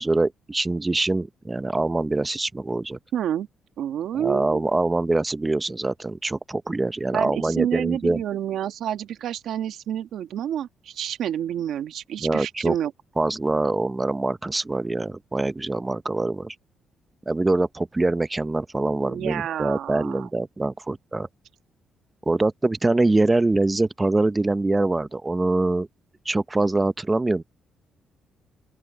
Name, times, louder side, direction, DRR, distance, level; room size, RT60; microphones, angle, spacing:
voice 1, 0.0-3.0 4.2-8.2 12.2-12.8 13.2-16.5 17.3-21.3 22.3-25.9 26.3-27.4, right 2 dB, 20° right, 0.7 m, -24 dB
voice 2, 3.1-3.5 3.8-4.6 7.1-12.9 19.0-20.3, right 10 dB, 75° right, 1.6 m, -29 dB
open air
cardioid pair, 90°, 0 cm